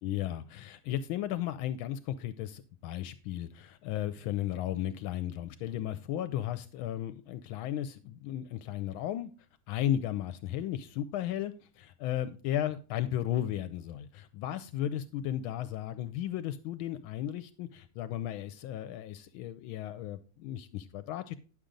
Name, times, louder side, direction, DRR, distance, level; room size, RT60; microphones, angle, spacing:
voice 1, 0.0-9.3 9.7-21.3, left 11 dB, 80° left, 1.3 m, -35 dB
10.0 x 6.7 x 3.8 m
omnidirectional pair, 2.3 m